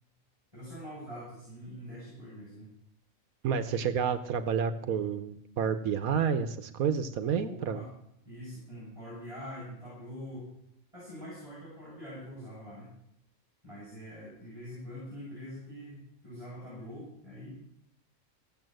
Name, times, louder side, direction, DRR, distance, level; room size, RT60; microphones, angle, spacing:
voice 1, 0.5-2.7 7.2-7.9 8.2-10.5 10.9-12.9 13.6-17.6, equal, 25° right, -8 dB, 6.8 m, -44 dB
voice 2, 3.4-7.8, right 7 dB, 85° right, 10 dB, 1.3 m, -30 dB
16.0 x 7.5 x 7.7 m, 0.75 s
omnidirectional pair, 1.5 m